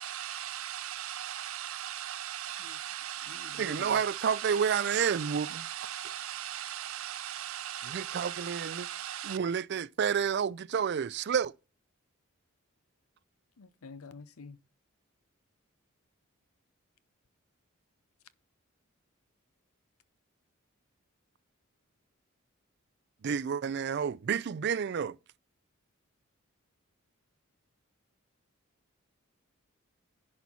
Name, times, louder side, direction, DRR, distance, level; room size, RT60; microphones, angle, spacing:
voice 1, 0.0-9.4, right 11 dB, 80° right, 0.7 m, -39 dB
voice 2, 2.6-4.0 13.6-14.6, left 4 dB, 90° left, 0.7 m, -49 dB
voice 3, 3.6-5.6 7.9-8.9 9.2-11.5 23.2-25.2, right 7 dB, 50° right, 0.3 m, -30 dB
10.5 x 4.3 x 5.5 m
head